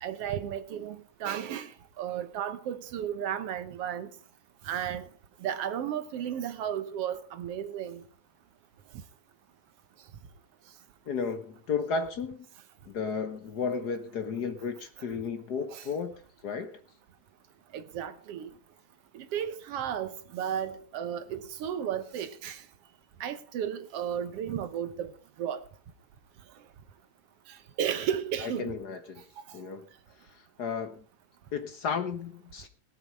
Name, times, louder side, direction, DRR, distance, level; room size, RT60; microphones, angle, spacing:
voice 1, 0.0-4.1 4.6-5.1 5.4-8.0 15.7-15.8 17.7-18.5 19.1-22.6 23.2-25.1 25.4-25.6 27.5-28.7 29.5-29.6, right 9 dB, 65° right, 1.6 m, -34 dB
voice 2, 11.1-12.5 12.9-16.1 16.4-16.8 28.4-29.2 29.5-29.9 30.2-31.0 31.5-32.7, left 5 dB, 60° left, 1.0 m, -33 dB
17.5 x 8.0 x 5.2 m
omnidirectional pair, 3.3 m